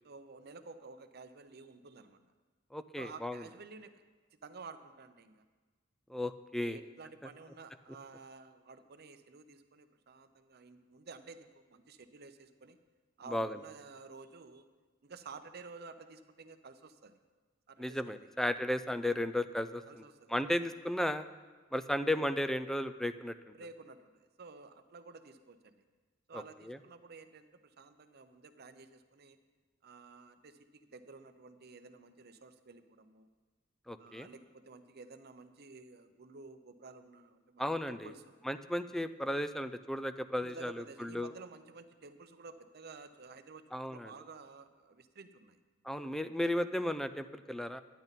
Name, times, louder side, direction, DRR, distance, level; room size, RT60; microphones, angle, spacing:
voice 1, 0.0-2.2 3.0-3.9 4.4-5.4 6.6-12.8 13.2-14.7 15.0-17.2 17.7-18.3 19.0-19.2 19.9-20.6 23.5-25.8 26.3-29.4 29.8-33.3 34.0-38.3 40.4-45.6, right 4 dB, 55° right, 9 dB, 0.7 m, -52 dB
voice 2, 2.7-3.4 6.1-6.8 13.3-13.6 17.8-19.8 20.3-21.2 21.7-23.5 26.3-26.8 33.9-34.3 37.6-38.1 38.4-41.3 43.7-44.1 45.8-47.8, left 1 dB, ahead, 12 dB, 0.3 m, -34 dB
10.5 x 10.0 x 4.1 m, 1.4 s
head